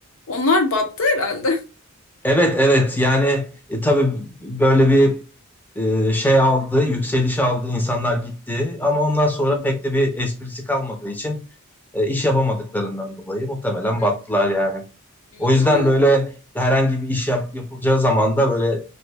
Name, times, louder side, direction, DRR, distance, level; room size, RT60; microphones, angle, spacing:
voice 1, 0.3-1.6 9.5-9.6 15.3-15.9, left 3 dB, 65° left, 0.7 m, -22 dB
voice 2, 2.2-5.2 5.8-11.4 11.9-14.8 15.4-18.8, equal, 10° left, 0.5 m, -20 dB
2.6 x 2.6 x 3.3 m
head